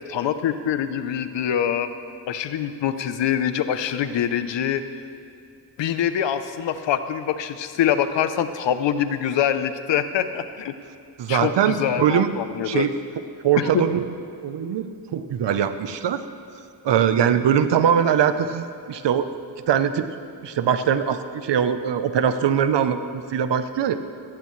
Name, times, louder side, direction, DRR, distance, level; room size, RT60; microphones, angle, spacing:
voice 1, 0.1-1.9 2.3-4.8 5.8-10.7 11.3-12.9 13.6-13.8, left 9 dB, 90° left, 11 dB, 0.8 m, -24 dB
voice 2, 11.2-12.3 12.6-12.9 13.4-14.1 14.4-14.9 15.1-16.2 16.8-19.3 19.7-20.1 20.4-23.9, right 8 dB, 80° right, 10 dB, 0.9 m, -21 dB
16.5 x 14.5 x 3.2 m, 2.5 s
cardioid pair, 70°, 42 cm